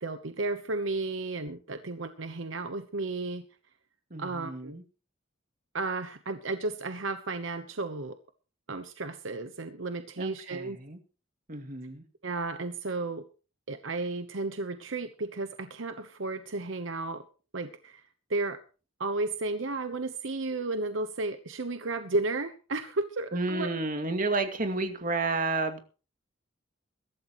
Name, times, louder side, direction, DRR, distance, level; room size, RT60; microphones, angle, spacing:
voice 1, 0.0-3.4 4.2-4.8 5.7-8.2 8.7-10.8 12.2-13.2 13.7-17.2 17.5-18.0 18.3-18.6 19.0-23.7, right 3 dB, 70° right, 9 dB, 1.1 m, -33 dB
voice 2, 4.1-4.8 10.2-11.0 11.5-12.0 23.3-25.8, right 3 dB, 45° right, 6 dB, 2.3 m, -31 dB
22.0 x 12.5 x 3.1 m, 0.35 s
head